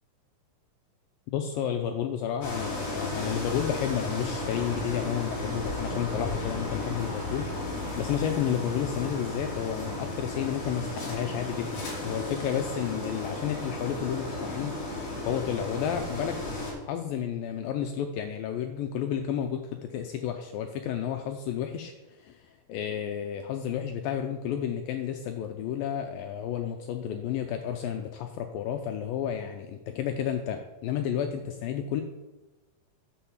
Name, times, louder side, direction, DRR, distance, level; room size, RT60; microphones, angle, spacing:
voice 1, 1.3-7.5 8.0-16.4 16.7-32.0, left 9 dB, 85° left, 5 dB, 2.1 m, -31 dB
sound 1, 2.4-16.7, left 2 dB, 45° left, 3.5 m, -34 dB
10.0 x 4.7 x 7.2 m, 1.1 s
omnidirectional pair, 4.6 m